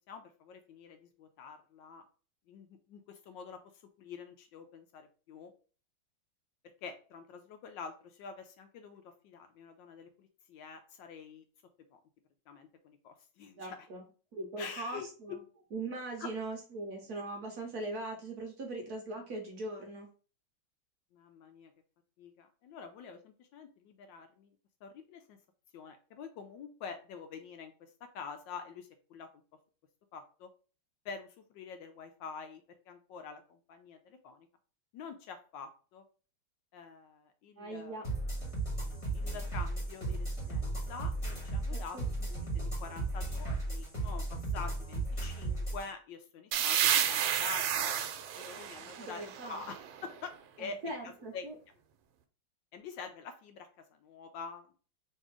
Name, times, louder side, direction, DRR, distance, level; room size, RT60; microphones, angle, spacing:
voice 1, 0.1-2.0 2.5-3.6 4.0-5.5 6.8-11.4 11.9-12.0 12.5-13.8 14.6-15.4 16.2-16.3 21.1-21.7 22.2-24.5 24.8-25.4 25.7-29.3 30.1-30.5 31.0-34.5 34.9-36.0 36.7-38.0 39.1-47.9 48.4-49.8 50.0-50.3 50.6-50.8 51.0-51.5 52.7-54.8, left 5 dB, 75° left, 7 dB, 1.2 m, -46 dB
voice 2, 13.6-14.0 14.3-15.4 15.7-20.1 37.6-38.0 41.7-42.0 48.8-49.6 50.6-51.6, right 2 dB, 60° right, 1 dB, 1.1 m, -40 dB
sound 1, 38.0-45.8, right 2 dB, 15° left, 1.3 m, -35 dB
sound 2, 46.5-50.1, right 9 dB, 85° right, 1.5 m, -31 dB
3.3 x 2.8 x 4.6 m, 0.38 s
omnidirectional pair, 2.2 m